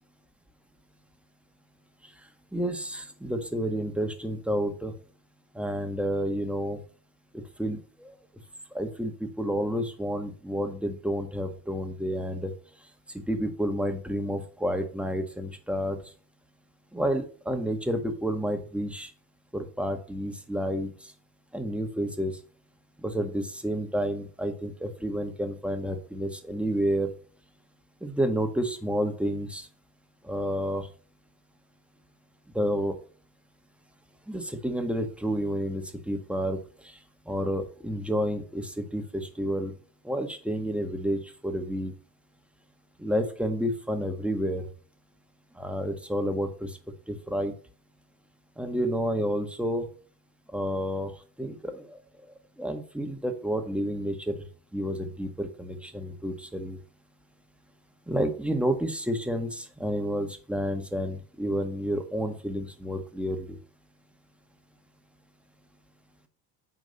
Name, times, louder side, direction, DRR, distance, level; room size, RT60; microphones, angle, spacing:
voice 1, 2.5-4.9 5.5-6.8 7.3-8.2 8.7-12.5 13.3-16.0 16.9-19.1 19.5-21.1 21.5-22.3 23.0-27.1 28.0-29.7 30.2-30.9 32.5-33.0 34.3-36.6 36.8-37.0 37.3-39.7 40.0-41.9 43.0-44.7 45.6-46.8 47.1-47.5 48.6-49.9 50.5-51.1 51.4-52.0 52.6-54.3 54.7-56.8 58.1-63.6, equal, 5° right, 6 dB, 1.7 m, -30 dB
9.4 x 4.0 x 6.7 m, 0.40 s
supercardioid pair, 90°, 45 cm